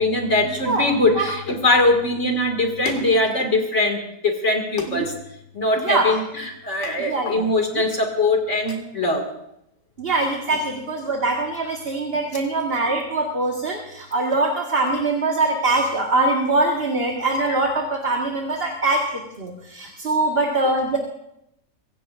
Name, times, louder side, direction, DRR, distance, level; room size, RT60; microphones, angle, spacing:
voice 1, 0.0-5.1 5.5-9.3, left 2 dB, 50° left, 3 dB, 2.6 m, -21 dB
voice 2, 5.8-6.2 7.0-7.5 10.0-21.0, right 2 dB, 40° right, 0 dB, 1.8 m, -23 dB
24.5 x 16.0 x 2.6 m, 0.80 s
omnidirectional pair, 1.6 m